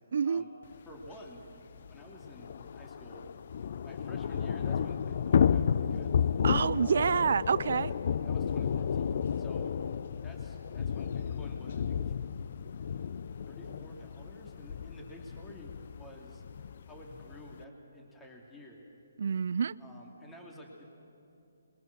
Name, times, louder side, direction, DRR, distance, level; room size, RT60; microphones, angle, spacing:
voice 1, 0.1-0.4 6.4-7.9 19.2-19.7, right 6 dB, 60° right, 20 dB, 0.5 m, -27 dB
voice 2, 0.8-1.4 1.9-3.2 3.8-6.2 6.8-7.1 7.8-8.0 8.2-9.8 10.2-12.1 13.4-16.4 16.9-18.8 19.8-20.9, equal, 10° left, -1 dB, 2.8 m, -51 dB
Thunder / Rain, 1.0-1.1 1.4-1.5 1.8-17.6, left 7 dB, 50° left, 0.6 m, -32 dB
27.5 x 22.0 x 7.1 m, 2.8 s
hypercardioid pair, 150°, 0 cm